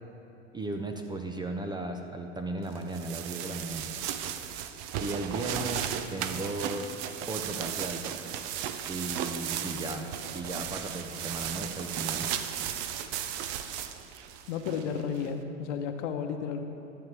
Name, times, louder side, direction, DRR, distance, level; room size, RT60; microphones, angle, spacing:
voice 1, 0.5-3.9 5.0-6.9 7.3-8.1 8.9-12.4, right 2 dB, 10° right, 4 dB, 0.5 m, -36 dB
sound 1, 2.7-15.3, right 9 dB, 50° right, 0.7 m, -35 dB
voice 2, 14.5-16.6, left 6 dB, 65° left, 6 dB, 1.1 m, -33 dB
12.5 x 8.3 x 4.8 m, 2.8 s
hypercardioid pair, 100°, 38 cm